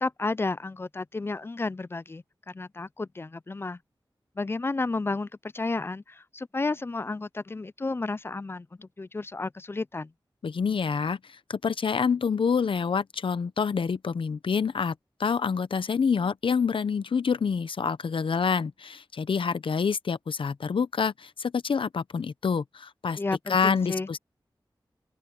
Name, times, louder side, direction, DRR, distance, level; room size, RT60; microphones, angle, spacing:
voice 1, 0.0-3.8 4.4-5.3 5.5-10.1 23.2-24.1, left 3 dB, 30° left, 0.3 m, -32 dB
voice 2, 10.4-11.2 11.5-14.9 15.2-23.2 23.5-24.2, left 6 dB, 90° left, 0.7 m, -27 dB
open air
wide cardioid pair, 70°, 9 cm